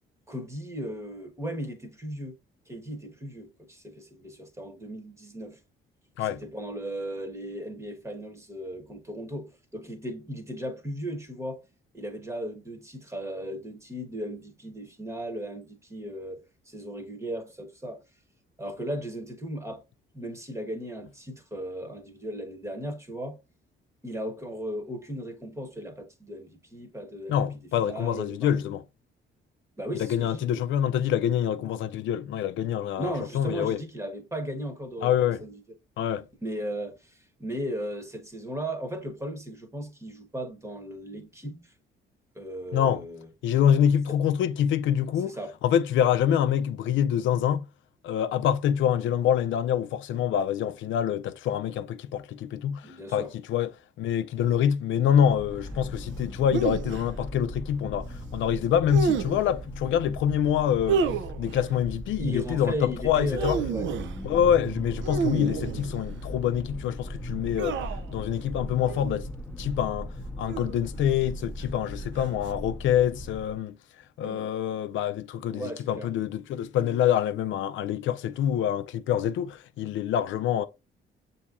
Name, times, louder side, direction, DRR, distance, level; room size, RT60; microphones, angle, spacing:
voice 1, 0.3-2.4 2.7-5.6 6.2-11.6 11.9-18.0 18.6-19.8 20.1-23.4 24.0-27.4 27.8-28.7 29.8-30.5 33.0-35.1 35.4-35.6 36.4-41.7 42.3-43.3 44.1-44.2 45.2-45.6 52.8-53.3 62.2-63.9 74.2-74.5 75.5-76.1, equal, 15° right, 1.1 m, -36 dB
voice 2, 27.3-28.8 30.0-33.8 35.0-35.4 36.0-36.2 42.7-43.0 43.4-45.4 45.6-47.7 48.0-52.8 53.1-53.7 54.0-58.1 58.3-61.0 61.4-63.6 64.2-67.8 68.1-69.3 69.6-70.1 70.4-73.8 74.2-80.7, left 9 dB, 75° left, 0.4 m, -26 dB
sound 1, 55.2-73.6, equal, 10° left, 0.7 m, -38 dB
sound 2, 56.5-57.0 58.9-59.5 60.9-61.6 63.2-64.2 65.0-66.2 67.6-68.1 68.9-69.1 70.4-71.0 72.2-72.5, right 5 dB, 70° right, 0.5 m, -30 dB
6.9 x 2.8 x 2.4 m
cardioid pair, 90°, 20 cm